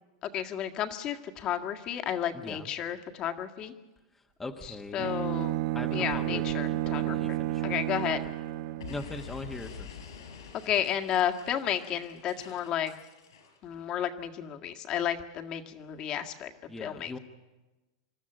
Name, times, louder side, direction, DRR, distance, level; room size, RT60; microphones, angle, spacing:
voice 1, 0.2-3.7 4.9-5.6 5.9-7.2 7.6-8.2 10.6-12.9 13.6-16.5 16.8-17.1, left 10 dB, 35° left, 5 dB, 1.7 m, -32 dB
voice 2, 2.3-2.7 4.4-5.1 5.7-7.7 8.1-8.2 8.9-10.0 16.7-17.2, left 2 dB, 10° left, 3 dB, 1.3 m, -41 dB
Bowed string instrument, 5.0-9.0, right 15 dB, 55° right, 1.1 m, -31 dB
Explosion, 8.8-13.6, left 6 dB, 90° left, 5.7 m, -46 dB
26.0 x 13.0 x 9.0 m, 1.1 s
supercardioid pair, 135°, 2 cm